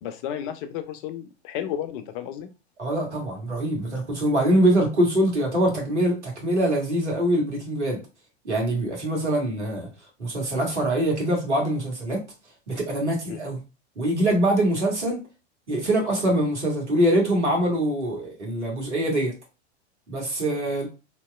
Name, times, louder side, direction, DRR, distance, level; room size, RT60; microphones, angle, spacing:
voice 1, 0.0-2.5 13.3-13.4, left 10 dB, 50° left, 9 dB, 0.6 m, -33 dB
voice 2, 2.8-8.0 8.4-9.9 10.2-12.2 12.7-13.6 13.9-15.2 15.7-19.3 20.1-20.9, right 1 dB, 90° right, -1 dB, 1.5 m, -23 dB
2.9 x 2.8 x 2.3 m, 0.30 s
hypercardioid pair, 95°, 34 cm